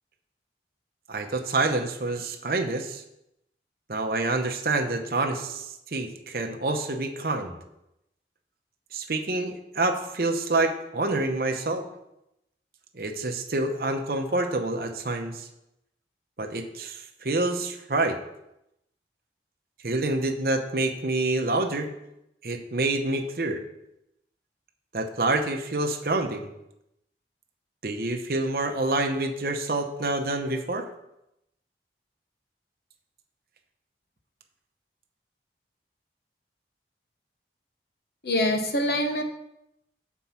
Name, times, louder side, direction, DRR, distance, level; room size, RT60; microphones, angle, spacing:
voice 1, 1.1-3.0 3.9-7.6 8.9-11.9 12.9-15.5 16.4-18.2 19.8-21.9 22.4-23.6 24.9-26.5 27.8-30.9, right 2 dB, 55° right, 4 dB, 0.8 m, -27 dB
voice 2, 38.2-39.2, left 1 dB, 65° left, 4 dB, 1.0 m, -24 dB
7.4 x 4.5 x 5.6 m, 0.84 s
head